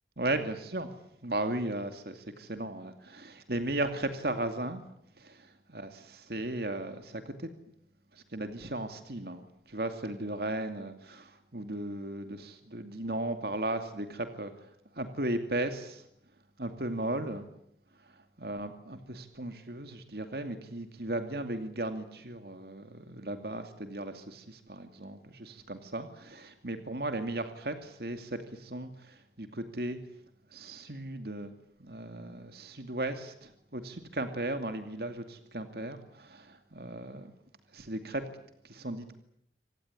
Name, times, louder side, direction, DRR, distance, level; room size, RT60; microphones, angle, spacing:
voice 1, 0.2-0.9 1.2-4.8 5.2-7.5 8.1-14.5 15.0-16.0 16.6-17.5 18.4-30.0 30.5-31.5 31.8-37.3 37.7-38.2 38.6-39.2, right 1 dB, 60° right, 7 dB, 2.5 m, -36 dB
26.0 x 18.5 x 10.0 m, 0.72 s
head